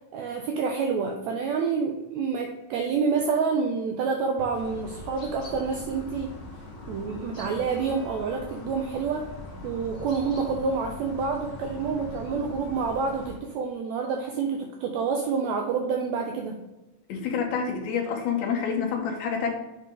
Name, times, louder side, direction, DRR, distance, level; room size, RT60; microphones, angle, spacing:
voice 1, 0.1-6.3 6.9-9.3 9.6-16.6, right 5 dB, 80° right, 3 dB, 1.6 m, -28 dB
sound 1, 4.5-13.4, left 2 dB, 55° left, 0.8 m, -41 dB
voice 2, 17.1-19.5, left 6 dB, 70° left, 1 dB, 2.1 m, -28 dB
8.4 x 3.9 x 3.7 m, 1.0 s
omnidirectional pair, 3.7 m